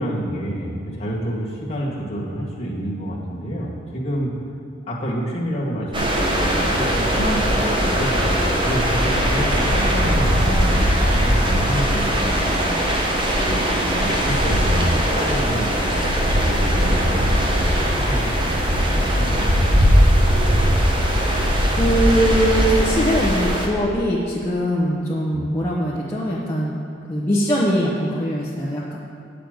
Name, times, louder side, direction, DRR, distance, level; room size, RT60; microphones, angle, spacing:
voice 1, 0.0-4.3 4.8-12.7 13.4-18.5 18.9-20.6 25.3-25.5, equal, 35° left, -4 dB, 1.7 m, -28 dB
sound 1, 5.9-23.7, equal, 25° right, 1.0 m, -19 dB
voice 2, 21.1-29.0, equal, 15° left, -7 dB, 0.9 m, -22 dB
8.7 x 5.1 x 7.8 m, 2.4 s
head